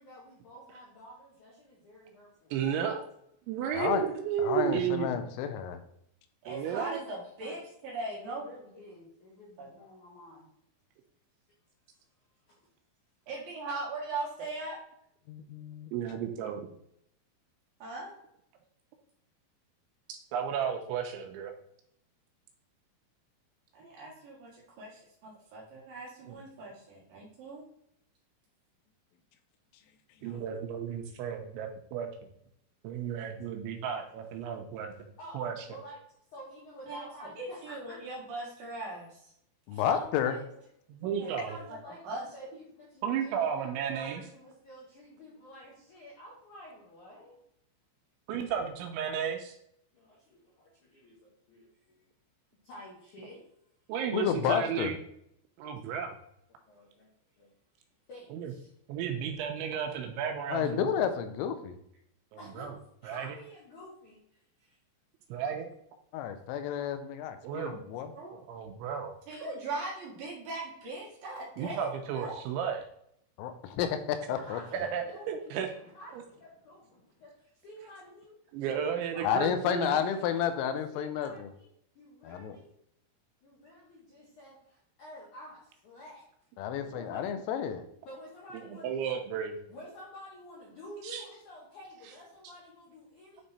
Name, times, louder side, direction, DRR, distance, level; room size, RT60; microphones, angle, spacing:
voice 1, 0.0-2.5 6.9-7.6 8.1-10.5 12.5-12.6 35.2-35.4 35.7-36.0 36.3-38.1 40.2-40.4 41.2-47.4 49.9-52.0 52.6-53.4 56.7-57.1 57.4-57.5 58.1-58.7 62.4-62.7 63.0-64.8 74.3-78.4 78.8-78.9 79.1-79.8 80.9-82.7 83.4-86.2 86.8-87.3 88.1-88.9 89.7-93.4, equal, 70° left, -5 dB, 1.8 m, -50 dB
voice 2, 2.5-3.0 3.5-5.3 6.5-7.0 15.9-16.7 20.1-21.5 26.3-26.4 30.2-32.1 32.8-34.9 35.3-35.7 40.9-41.6 43.0-44.2 48.3-49.5 53.9-55.0 55.6-56.2 58.3-58.5 58.9-60.9 62.3-62.7 63.0-63.4 65.3-65.7 67.4-67.8 68.3-69.1 71.6-72.8 74.7-75.7 76.1-76.2 78.5-80.1 88.6-89.6 91.0-91.3, right 8 dB, 85° right, 3 dB, 2.8 m, -33 dB
voice 3, 4.4-5.8 15.3-15.9 39.7-40.4 54.1-54.9 60.5-61.8 66.1-68.1 73.4-74.6 79.2-81.5 82.2-82.6 86.6-87.8, left 9 dB, 90° left, 9 dB, 3.4 m, -31 dB
voice 4, 6.4-8.5 9.6-9.7 13.3-14.8 17.8-18.1 23.7-27.6 36.9-39.2 39.7-40.1 41.2-41.3 41.7-41.8 42.0-42.2 68.1-68.3 69.3-72.4, right 2 dB, 60° right, -4 dB, 2.8 m, -39 dB
9.9 x 3.7 x 4.1 m, 0.72 s
omnidirectional pair, 5.7 m